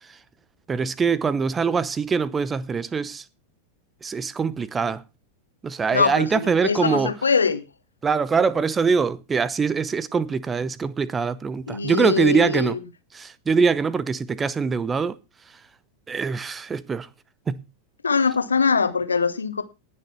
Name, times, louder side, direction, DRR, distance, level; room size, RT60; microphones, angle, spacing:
voice 1, 0.7-3.2 4.0-5.0 5.6-7.1 8.0-12.8 13.1-15.2 16.1-17.1 17.5-17.6, right 5 dB, 15° right, 0.8 m, -23 dB
voice 2, 5.9-7.6 11.7-12.8 18.0-19.6, left 5 dB, 75° left, 1.5 m, -22 dB
18.5 x 6.6 x 4.5 m
figure-of-eight pair, 90°, 0 cm